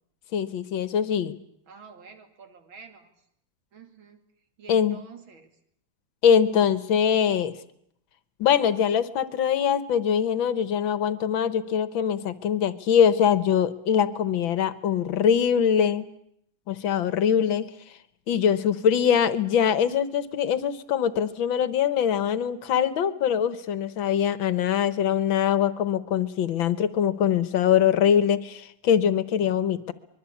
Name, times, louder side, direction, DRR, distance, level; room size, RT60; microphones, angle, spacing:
voice 1, 0.3-1.4 4.7-5.0 6.2-7.5 8.4-16.1 16.7-17.7 18.3-29.9, left 8 dB, 80° left, 15 dB, 1.9 m, -23 dB
voice 2, 1.7-3.1 3.7-4.2 4.6-5.5, right 5 dB, 85° right, 7 dB, 3.2 m, -48 dB
24.5 x 22.0 x 8.5 m, 0.72 s
omnidirectional pair, 2.1 m